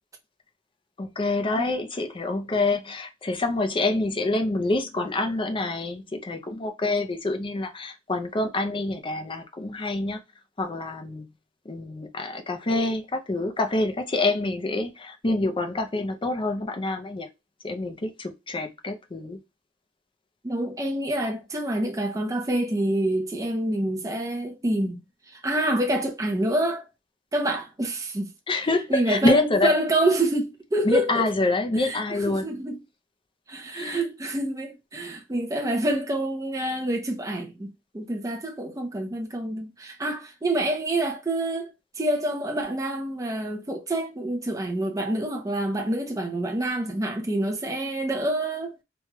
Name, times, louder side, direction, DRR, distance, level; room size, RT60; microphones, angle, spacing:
voice 1, 1.0-10.2 10.6-11.3 11.7-17.3 17.6-19.4 28.5-29.8 30.8-32.5 33.7-34.0, left 2 dB, 25° left, 0.5 m, -26 dB
voice 2, 20.4-26.9 27.3-28.3 28.9-31.3 31.8-32.8 33.5-41.7 42.0-48.8, right 1 dB, 15° right, 0.6 m, -27 dB
3.1 x 2.3 x 2.9 m
head